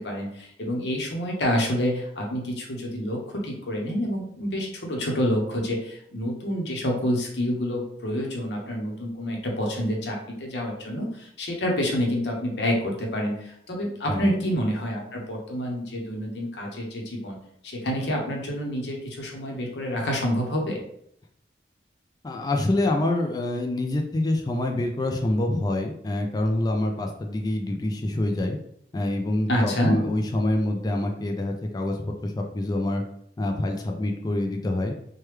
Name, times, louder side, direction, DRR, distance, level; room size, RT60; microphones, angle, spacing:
voice 1, 0.0-17.4 17.6-20.8 29.5-30.0, equal, 75° left, 0 dB, 0.7 m, -28 dB
voice 2, 14.1-14.4 22.2-28.6 28.9-33.0 33.4-34.9, left 1 dB, 20° left, 2 dB, 0.3 m, -26 dB
3.2 x 2.2 x 3.1 m, 0.71 s
head